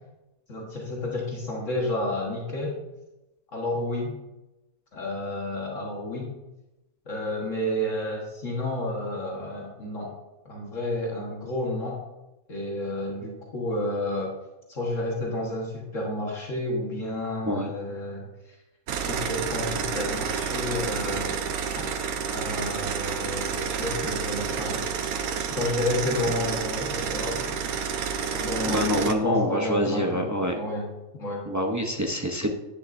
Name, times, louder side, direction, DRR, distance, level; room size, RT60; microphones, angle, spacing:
voice 1, 0.5-2.8 3.5-4.2 4.9-6.3 7.1-10.1 10.5-12.0 12.5-14.3 14.7-18.6 19.1-21.4 22.3-25.2 25.6-27.5 28.3-31.4, left 1 dB, 60° left, -2 dB, 1.8 m, -31 dB
sound 1, 18.9-29.1, right 6 dB, 90° right, 1.2 m, -29 dB
voice 2, 28.7-30.5 31.5-32.5, equal, 25° right, 2 dB, 0.4 m, -26 dB
10.0 x 10.0 x 2.6 m, 1.0 s
omnidirectional pair, 1.5 m